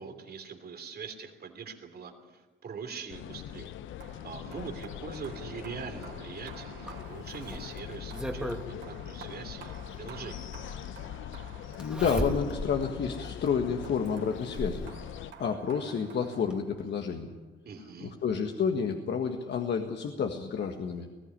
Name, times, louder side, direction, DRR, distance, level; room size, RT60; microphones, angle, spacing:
voice 1, 0.0-3.7 4.2-10.5 17.6-18.1, right 5 dB, 50° right, 5 dB, 3.2 m, -43 dB
sound 1, 3.1-15.3, left 11 dB, 80° left, 0.8 m, -42 dB
sound 2, 4.0-17.0, right 6 dB, 70° right, 3.9 m, -52 dB
Zipper (clothing), 6.9-8.7 10.1-10.2 11.8-12.8 13.3-13.4 14.0-14.9 16.1-16.2 16.5-16.6, right 1 dB, 5° right, 2.3 m, -36 dB
voice 2, 11.8-14.8 15.4-17.3 18.0-21.1, left 6 dB, 60° left, 4 dB, 1.7 m, -30 dB
20.0 x 15.0 x 10.0 m, 1.3 s
cardioid pair, 90°, 20 cm